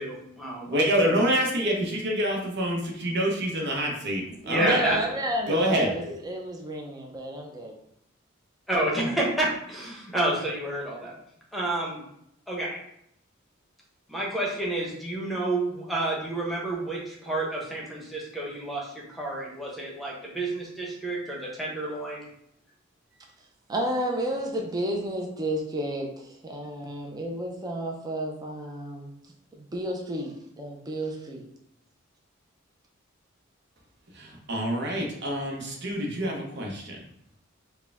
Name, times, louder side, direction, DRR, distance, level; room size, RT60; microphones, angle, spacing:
voice 1, 0.0-0.8 4.4-5.0 5.5-5.7 8.7-11.1 11.5-12.0 12.5-12.8 14.1-22.2, right 1 dB, ahead, -3 dB, 1.0 m, -30 dB
voice 2, 0.7-4.8 5.5-5.9 34.2-37.0, equal, 55° right, 0 dB, 0.9 m, -26 dB
voice 3, 4.3-7.8 23.7-29.1 29.6-31.4, right 1 dB, 20° right, 0 dB, 0.5 m, -31 dB
4.6 x 2.2 x 3.4 m, 0.73 s
head